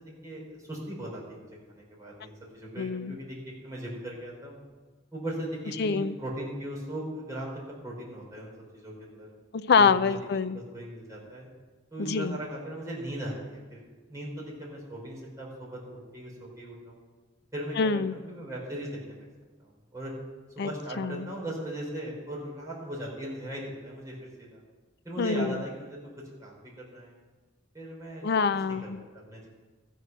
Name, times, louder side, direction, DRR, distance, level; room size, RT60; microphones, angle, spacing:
voice 1, 0.2-3.4 3.6-4.6 5.1-9.3 9.8-10.0 10.5-11.5 11.9-13.8 14.1-17.0 17.5-19.3 19.6-20.1 20.5-24.6 25.0-26.1 26.4-27.1 27.7-28.2 28.8-29.5, right 1 dB, 15° right, -5 dB, 3.9 m, -38 dB
voice 2, 2.8-3.1 5.8-6.1 9.5-10.6 12.1-12.4 17.8-18.1 20.6-20.7 21.0-21.3 25.2-25.6 28.2-29.0, left 5 dB, 55° left, 14 dB, 0.5 m, -25 dB
14.0 x 8.2 x 5.9 m, 1.3 s
head